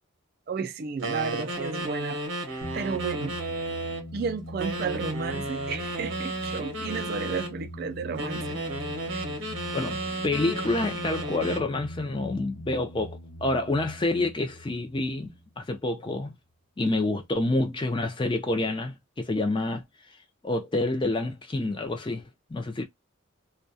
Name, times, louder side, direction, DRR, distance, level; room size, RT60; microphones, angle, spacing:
voice 1, 0.5-3.4 4.1-8.6 9.1-9.2, right 5 dB, 50° right, 0.3 m, -33 dB
sound 1, 1.0-4.1 4.6-7.5 8.2-11.7, right 1 dB, 75° right, 0.8 m, -33 dB
sound 2, 2.6-15.8, left 1 dB, 65° left, 0.8 m, -42 dB
voice 2, 9.7-16.3 16.8-19.8 20.4-22.8, left 2 dB, 25° left, 0.4 m, -28 dB
2.2 x 2.2 x 2.6 m
head